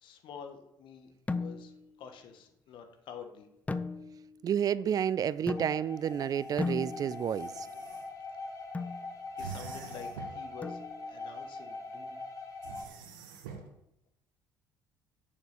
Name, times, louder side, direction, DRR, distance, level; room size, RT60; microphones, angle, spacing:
voice 1, 0.0-1.7 2.0-3.5 9.3-12.2, left 7 dB, 55° left, 1.5 m, -48 dB
sound 1, 1.3-1.9 3.7-4.4 5.5-6.1 6.6-7.4 8.7-9.1 10.6-11.2, left 3 dB, 15° left, 0.7 m, -37 dB
voice 2, 4.4-7.7, right 9 dB, 40° right, 0.4 m, -30 dB
sound 2, 5.5-12.8, left 3 dB, 35° left, 2.6 m, -42 dB
sound 3, 6.0-8.1 9.4-10.5 12.6-13.7, right 6 dB, 75° right, 1.2 m, -47 dB
6.9 x 6.6 x 7.1 m
figure-of-eight pair, 55°, 10 cm